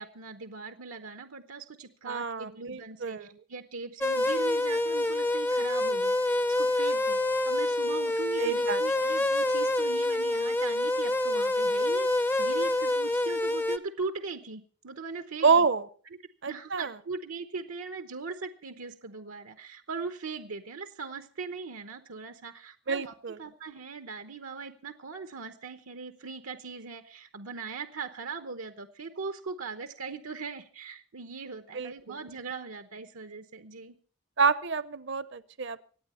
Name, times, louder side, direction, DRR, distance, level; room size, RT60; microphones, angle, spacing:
voice 1, 0.0-7.2 7.4-15.7 16.5-33.9, right 4 dB, 80° right, 8 dB, 1.0 m, -40 dB
voice 2, 2.1-3.4 8.4-8.8 15.4-15.9 16.4-16.9 22.9-23.4 31.7-32.2 34.4-35.8, right 5 dB, 55° right, 16 dB, 0.8 m, -27 dB
sound 1, 4.0-13.8, left 1 dB, 10° left, 0.6 m, -27 dB
25.0 x 9.1 x 4.3 m, 0.42 s
head